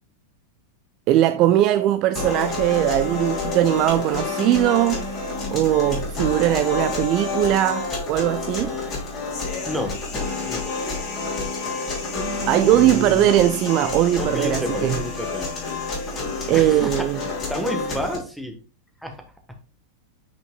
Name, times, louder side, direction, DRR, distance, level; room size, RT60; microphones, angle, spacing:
voice 1, 1.1-5.1 5.5-8.8 12.5-15.0 16.5-17.2, right 13 dB, 40° right, 0.3 m, -20 dB
sound 1, 2.2-18.2, left 3 dB, 30° left, 3.2 m, -28 dB
voice 2, 9.7-10.0 10.4-10.7 11.2-11.3 12.7-13.3 14.2-15.5 16.5-18.6 19.0-19.2, left 1 dB, ahead, 1.2 m, -30 dB
9.0 x 5.2 x 2.3 m
figure-of-eight pair, 90°, 0 cm